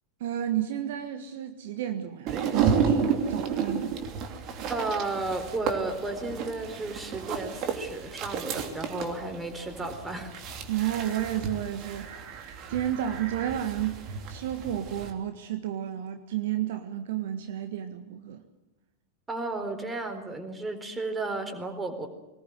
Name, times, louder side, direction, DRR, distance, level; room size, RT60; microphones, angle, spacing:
voice 1, 0.2-4.0 10.7-18.4, right 11 dB, 55° right, 1.6 m, -31 dB
sound 1, 2.3-15.1, right 6 dB, 35° right, 3.0 m, -32 dB
voice 2, 4.7-10.3 19.3-22.1, right 2 dB, 15° right, 4.2 m, -33 dB
23.0 x 20.0 x 7.9 m
figure-of-eight pair, 90°, 0 cm